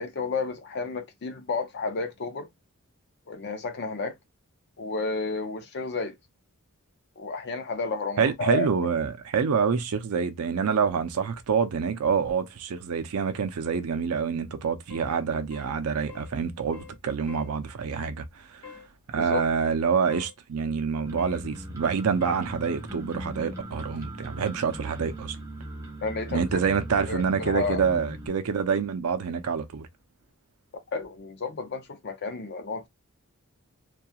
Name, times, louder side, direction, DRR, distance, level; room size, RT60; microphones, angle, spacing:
voice 1, 0.0-2.5 3.3-4.2 4.8-6.2 7.2-8.7 19.2-19.4 26.0-26.6 27.1-27.8 30.9-32.9, left 3 dB, 50° left, 0.5 m, -31 dB
voice 2, 8.2-18.6 19.1-25.4 26.3-29.9, right 6 dB, 90° right, 0.5 m, -27 dB
sound 1, 14.9-15.1 15.5-15.7 16.1-16.3 16.7-17.0 17.3-17.5 18.6-18.9 20.1-20.3 21.2-21.4 22.2-22.4, left 5 dB, 75° left, 0.9 m, -45 dB
sound 2, 21.0-28.3, right 1 dB, 15° right, 0.8 m, -39 dB
2.8 x 2.3 x 2.3 m
head